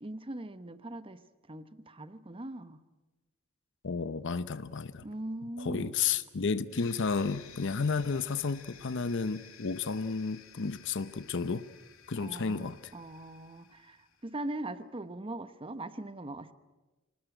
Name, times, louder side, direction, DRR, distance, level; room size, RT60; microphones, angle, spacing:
voice 1, 0.0-1.2 1.5-2.8 5.0-5.9 12.1-14.0 14.2-16.5, right 1 dB, 25° right, 12 dB, 1.1 m, -40 dB
voice 2, 3.8-5.1 5.6-11.7 12.1-12.8, left 5 dB, 65° left, 14 dB, 0.7 m, -32 dB
sound 1, 6.7-14.3, left 7 dB, 85° left, 2.6 m, -54 dB
26.0 x 19.5 x 8.9 m, 1.2 s
head